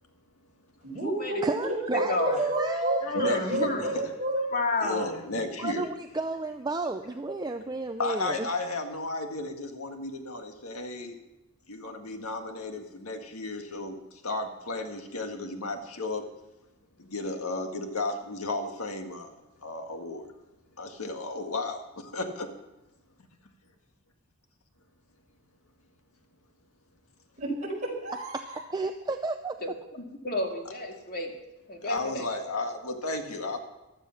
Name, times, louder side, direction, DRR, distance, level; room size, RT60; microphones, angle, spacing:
voice 1, 0.8-4.5 27.4-28.6, right 1 dB, 35° right, -2 dB, 4.9 m, -30 dB
voice 2, 1.4-3.1 3.9-4.0 4.3-4.4 5.6-8.4 28.7-29.6, right 3 dB, 20° right, 6 dB, 0.5 m, -31 dB
voice 3, 1.9-2.4 3.0-3.9 4.5-5.2 29.6-31.3 31.7-32.2, left 2 dB, 45° left, 2 dB, 2.3 m, -31 dB
voice 4, 3.0-4.1 4.8-5.9 8.0-11.2 11.7-16.2 17.0-20.3 20.8-22.5 31.8-33.6, left 2 dB, 75° left, 5 dB, 1.8 m, -34 dB
15.5 x 12.0 x 5.8 m, 1.0 s
head